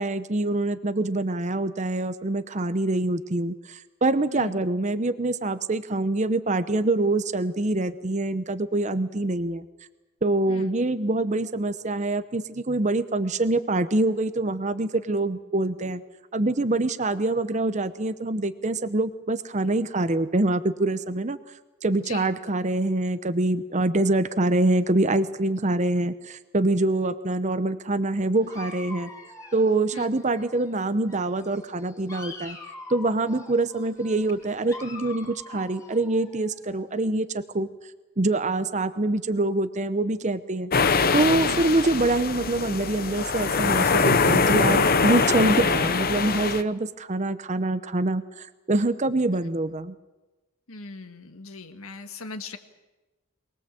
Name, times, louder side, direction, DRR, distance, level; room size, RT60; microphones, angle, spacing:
voice 1, 0.0-9.6 10.2-16.0 16.3-21.4 21.8-29.1 29.5-32.6 32.9-37.7 38.2-40.7 41.1-50.0, right 2 dB, 35° right, 12 dB, 0.8 m, -25 dB
voice 2, 21.9-22.3 29.9-30.1 41.5-41.7 50.7-52.6, left 3 dB, 75° left, 7 dB, 1.8 m, -39 dB
Dog, 28.4-30.8 31.1-37.0, left 3 dB, 15° left, 3.0 m, -44 dB
sound 1, 40.7-46.6, left 4 dB, 45° left, 0.9 m, -23 dB
23.0 x 20.0 x 7.6 m, 1.1 s
head